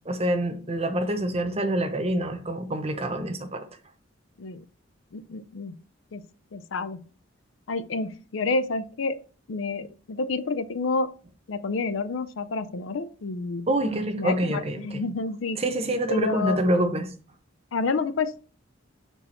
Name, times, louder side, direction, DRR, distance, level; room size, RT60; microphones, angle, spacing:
voice 1, 0.1-3.6 13.7-15.0 15.6-17.1, right 1 dB, 30° right, 0.9 m, -26 dB
voice 2, 5.1-5.8 6.1-6.2 6.5-7.0 7.7-9.2 9.5-11.1 11.5-13.7 14.2-15.6 16.1-16.8 17.7-18.4, left 3 dB, 80° left, 0.5 m, -29 dB
6.6 x 4.5 x 4.3 m
head